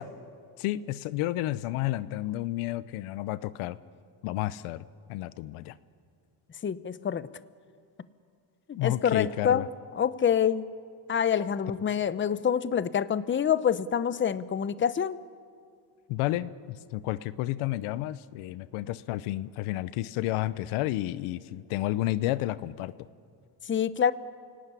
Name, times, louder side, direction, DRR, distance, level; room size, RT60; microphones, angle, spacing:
voice 1, 0.6-3.8 4.2-4.8 5.1-5.7 8.8-9.7 16.1-22.9, left 15 dB, 85° left, 16 dB, 0.9 m, -31 dB
voice 2, 6.6-7.3 8.7-9.7 9.9-10.7 11.1-15.1 23.7-24.1, left 8 dB, 25° left, 15 dB, 0.8 m, -26 dB
28.5 x 18.0 x 9.8 m, 2.3 s
cardioid pair, 110°, 48 cm